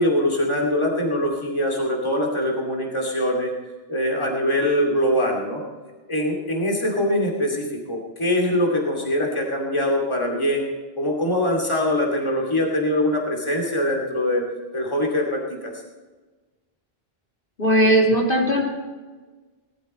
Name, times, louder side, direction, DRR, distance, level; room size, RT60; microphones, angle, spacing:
voice 1, 0.0-3.5 3.9-5.6 6.1-10.7 11.0-14.4 14.7-15.7, left 1 dB, 25° left, -1 dB, 2.6 m, -23 dB
voice 2, 17.6-18.6, right 1 dB, 60° left, -2 dB, 2.9 m, -18 dB
19.5 x 12.5 x 4.2 m, 1.3 s
omnidirectional pair, 1.0 m